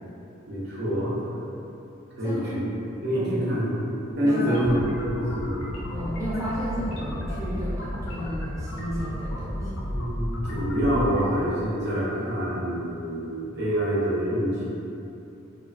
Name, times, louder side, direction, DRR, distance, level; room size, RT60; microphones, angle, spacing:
voice 1, 0.5-1.4 2.2-2.6 3.0-3.9 4.2-5.7 9.9-14.7, equal, 55° right, -8 dB, 0.7 m, -26 dB
voice 2, 2.2-2.6 3.1-3.4 4.2-4.8 5.9-9.8, equal, 15° right, -9 dB, 0.5 m, -33 dB
sound 1, 4.1-11.2, left 1 dB, 70° left, 0.4 m, -33 dB
2.4 x 2.3 x 2.4 m, 2.8 s
head